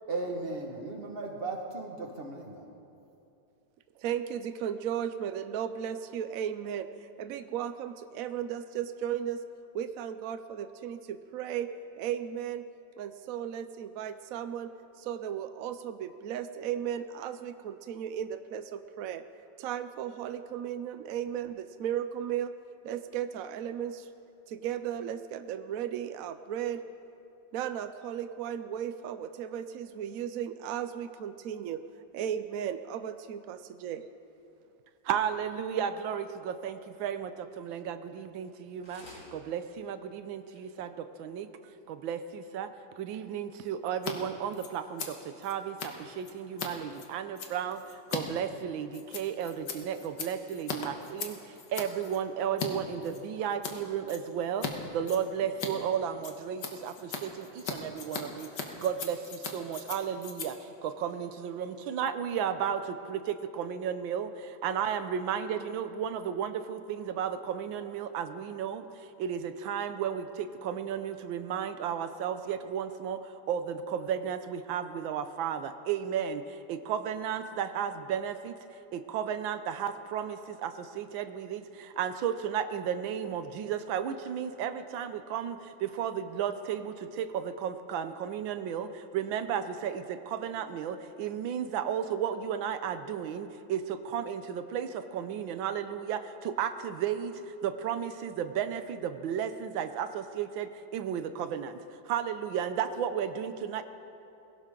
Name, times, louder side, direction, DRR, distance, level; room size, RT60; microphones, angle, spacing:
voice 1, 0.1-2.6, right 3 dB, 30° right, 1 dB, 1.8 m, -36 dB
voice 2, 4.0-9.4 9.7-12.6 13.0-14.7 15.0-19.2 19.6-22.5 22.8-24.1 24.5-26.8 27.5-31.8 32.1-34.1, right 9 dB, 75° right, 10 dB, 0.8 m, -35 dB
voice 3, 35.0-39.0 39.3-41.5 41.9-42.7 43.0-58.5 58.8-103.8, right 8 dB, 90° right, 10 dB, 1.5 m, -34 dB
sound 1, 38.4-38.6 38.8-39.3 39.8-39.9 40.2-40.3 40.5-40.6 41.2-41.3, left 1 dB, 85° left, 4.4 m, -50 dB
Scissors, 43.9-44.1 44.4-52.7 53.0-53.8 54.1-54.7 55.0-61.8, left 5 dB, 65° left, 1.9 m, -40 dB
21.5 x 17.0 x 3.8 m, 2.8 s
omnidirectional pair, 2.1 m